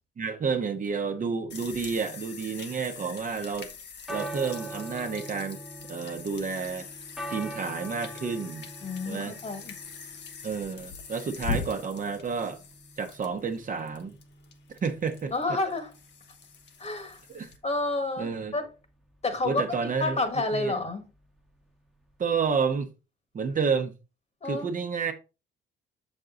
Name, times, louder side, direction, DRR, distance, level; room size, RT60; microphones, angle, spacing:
voice 1, 0.2-3.7 4.1-5.6 5.9-6.9 7.3-8.7 9.0-9.4 10.4-12.6 13.0-14.2 14.7-15.6 17.3-17.5 18.2-18.5 19.4-20.2 20.5-20.7 22.2-22.9 23.3-23.9 24.4-25.1, right 5 dB, 40° right, 1.0 m, -30 dB
sound 1, 1.5-17.6, left 5 dB, 60° left, 1.2 m, -42 dB
sound 2, 3.7-22.8, right 1 dB, ahead, 1.2 m, -45 dB
voice 2, 8.8-9.7 15.3-15.9 16.8-17.2 17.6-18.7 19.2-21.0 24.4-24.7, left 2 dB, 35° left, 1.6 m, -30 dB
6.5 x 5.4 x 3.7 m
cardioid pair, 90°, 20 cm